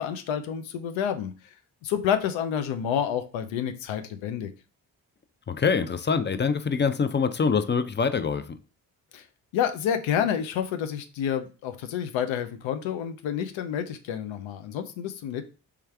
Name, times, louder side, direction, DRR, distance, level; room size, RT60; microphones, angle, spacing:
voice 1, 0.0-1.3 1.8-4.5 9.1-9.2 9.5-15.4, left 9 dB, 75° left, 0.7 m, -29 dB
voice 2, 5.5-8.6, left 5 dB, 25° left, 0.4 m, -25 dB
3.4 x 3.4 x 3.3 m
hypercardioid pair, 40°, 46 cm